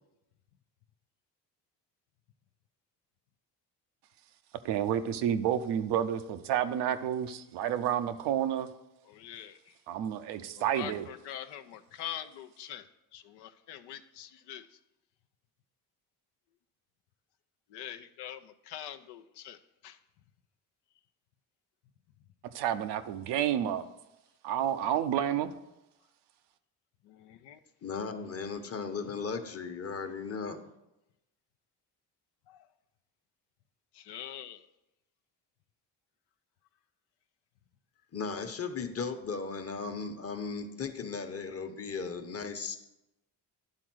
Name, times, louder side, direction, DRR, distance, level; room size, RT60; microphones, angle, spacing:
voice 1, 4.6-8.7 9.9-11.1 22.4-23.9 24.4-25.6, right 10 dB, 85° right, 0.6 m, -30 dB
voice 2, 9.1-9.8 10.6-14.8 17.7-20.0 27.0-27.6 32.5-32.7 33.9-34.7, left 10 dB, 85° left, 0.6 m, -44 dB
voice 3, 27.8-30.6 38.1-42.8, left 5 dB, 35° left, 1.0 m, -36 dB
10.5 x 3.8 x 6.1 m
supercardioid pair, 70°, 40 cm